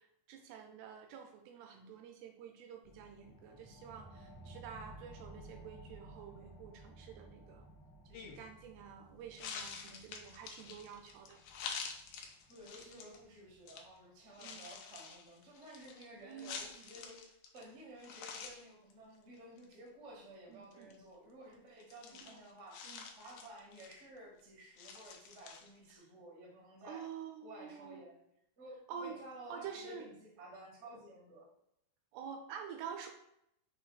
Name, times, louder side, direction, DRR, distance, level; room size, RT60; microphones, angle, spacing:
voice 1, 0.0-7.7 8.1-11.4 14.4-14.7 16.2-16.9 20.5-20.9 22.1-22.4 22.8-23.0 25.9-26.1 26.8-28.0 28.9-29.2 29.5-30.1 32.1-33.1, right 7 dB, 80° right, 3 dB, 2.5 m, -49 dB
sound 1, 2.8-13.9, right 1 dB, 55° left, 1.2 m, -56 dB
sound 2, 8.1-8.5 9.4-13.2 13.7-13.8 14.3-17.7 18.0-18.6 18.9-19.0 19.3-19.7 20.7-20.9 21.8-24.2 24.8-25.9, left 6 dB, 80° left, 2.1 m, -48 dB
voice 2, 12.5-17.2 17.5-22.9 23.1-27.1 27.4-28.2 28.6-31.5, right 1 dB, 55° right, -3 dB, 0.7 m, -53 dB
6.3 x 3.0 x 4.9 m, 0.77 s
omnidirectional pair, 4.9 m